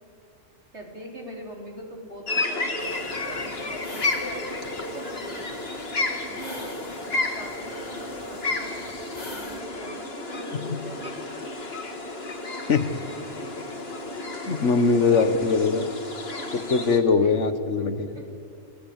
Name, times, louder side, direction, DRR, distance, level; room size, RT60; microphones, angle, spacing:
voice 1, 0.7-5.5 6.1-8.7 9.3-11.2 15.0-15.1 16.5-16.6 17.2-17.4 18.1-18.3, equal, 55° right, 0 dB, 4.8 m, -43 dB
sound 1, 2.3-17.0, left 2 dB, 50° left, 2.4 m, -32 dB
sound 2, 2.8-9.6, left 1 dB, 30° left, 2.6 m, -43 dB
voice 2, 14.4-15.9 16.5-18.1, left 4 dB, 65° left, 11 dB, 1.5 m, -22 dB
30.0 x 19.0 x 8.9 m, 2.5 s
omnidirectional pair, 1.4 m